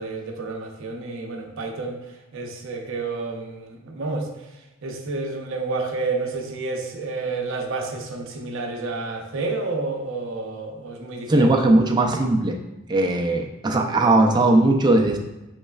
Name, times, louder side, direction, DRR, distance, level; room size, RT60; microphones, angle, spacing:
voice 1, 0.0-2.0 2.3-4.3 4.8-11.7, right 3 dB, 60° right, 3 dB, 0.6 m, -30 dB
voice 2, 11.3-12.5 12.9-15.2, right 2 dB, 20° right, 2 dB, 0.4 m, -18 dB
6.4 x 3.1 x 2.3 m, 1.0 s
head